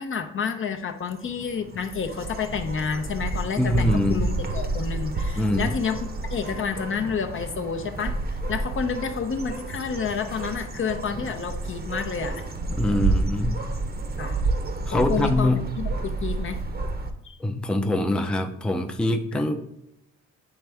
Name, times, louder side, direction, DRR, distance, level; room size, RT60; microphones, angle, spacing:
voice 1, 0.0-12.4 14.2-14.4 14.9-16.6 17.2-17.4 19.3-19.4, left 6 dB, 45° left, 5 dB, 0.7 m, -30 dB
sound 1, 1.0-17.1, right 3 dB, 30° right, 0.8 m, -30 dB
voice 2, 3.6-4.3 5.4-5.7 12.7-13.5 14.9-15.7 17.4-19.7, left 1 dB, 5° left, 5 dB, 0.6 m, -24 dB
8.9 x 3.5 x 3.4 m, 0.82 s
cardioid pair, 90°, 30 cm